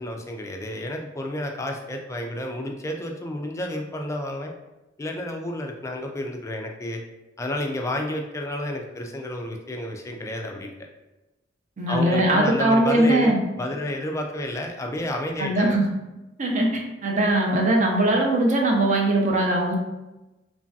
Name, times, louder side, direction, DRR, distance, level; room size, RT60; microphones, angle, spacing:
voice 1, 0.0-4.5 5.0-7.0 7.4-10.7 11.9-15.8, left 1 dB, 15° left, 2 dB, 0.3 m, -30 dB
voice 2, 11.8-13.4 15.4-15.8 16.4-19.7, right 1 dB, 40° right, 0 dB, 0.5 m, -21 dB
3.2 x 2.6 x 2.3 m, 1.0 s
head